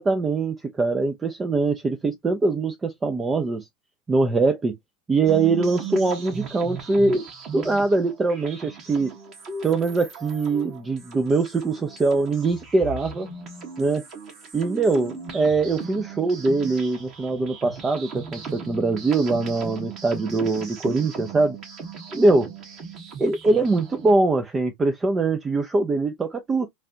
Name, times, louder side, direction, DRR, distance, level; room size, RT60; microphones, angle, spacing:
voice 1, 0.0-3.7 4.1-4.7 5.1-7.2 7.5-9.1 9.6-13.3 13.8-14.0 14.5-21.6 22.1-22.5 23.2-26.7, right 3 dB, 25° right, 0.5 m, -22 dB
sound 1, 5.3-24.1, right 5 dB, 45° right, 1.6 m, -37 dB
3.2 x 2.4 x 2.7 m
hypercardioid pair, 85°, 0 cm